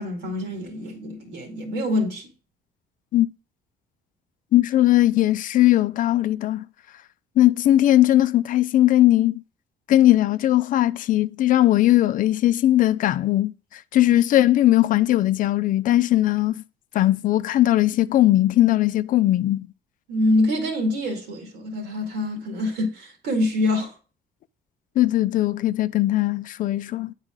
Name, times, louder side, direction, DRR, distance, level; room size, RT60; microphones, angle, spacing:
voice 1, 0.0-2.3 20.1-23.9, left 1 dB, 80° right, 2.2 m, -25 dB
voice 2, 4.5-6.7 7.4-9.4 9.9-16.6 16.9-19.7 25.0-27.1, left 14 dB, 50° left, 0.4 m, -19 dB
8.9 x 4.1 x 3.7 m
cardioid pair, 110°, 17 cm